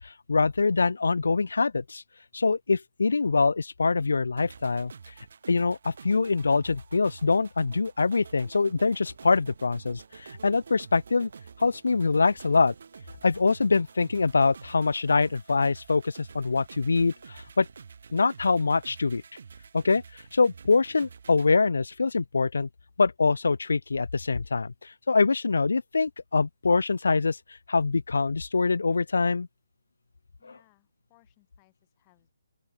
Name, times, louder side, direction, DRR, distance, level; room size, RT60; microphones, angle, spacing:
voice 1, 0.0-2.0 2.3-4.9 5.5-11.3 11.6-12.7 13.2-17.7 18.1-19.2 19.7-20.0 20.3-22.7 23.0-27.4 27.7-29.5, left 4 dB, 85° left, 0.5 m, -24 dB
sound 1, 4.4-21.5, right 6 dB, 50° right, 1.5 m, -48 dB
voice 2, 30.4-32.3, left 29 dB, 15° left, 4.7 m, -65 dB
open air
hypercardioid pair, 175°, 0 cm